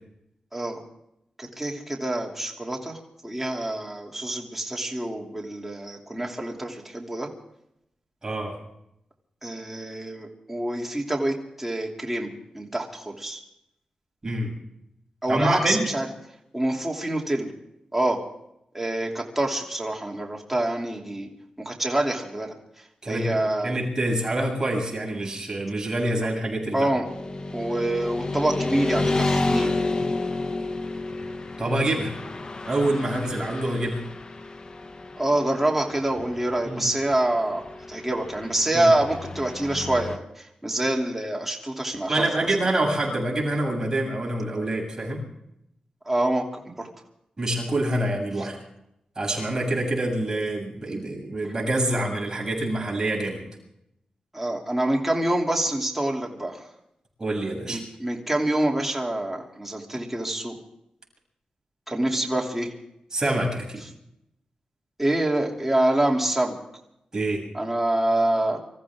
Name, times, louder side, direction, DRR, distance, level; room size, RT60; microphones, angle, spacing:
voice 1, 1.4-3.0 3.2-7.3 9.4-13.4 15.2-16.1 16.5-17.5 17.9-18.2 18.7-21.3 21.6-22.5 23.1-23.8 26.7-27.1 27.5-29.7 35.2-37.6 37.9-42.2 46.1-46.9 54.3-56.6 57.7-60.5 61.9-62.7 65.0-66.6 67.5-68.6, right 1 dB, 10° right, -1 dB, 2.9 m, -26 dB
voice 2, 8.2-8.6 14.2-14.5 15.3-15.9 23.0-26.9 31.6-32.1 32.6-34.0 36.6-36.9 38.7-38.9 42.1-45.2 47.4-48.6 49.2-53.4 57.2-57.8 63.1-63.8 67.1-67.4, right 1 dB, 25° right, -1 dB, 7.4 m, -26 dB
Motorcycle / Traffic noise roadway noise, 27.0-40.2, left 2 dB, 35° left, 1.1 m, -31 dB
26.0 x 14.5 x 3.7 m, 0.80 s
wide cardioid pair, 100°, 2 cm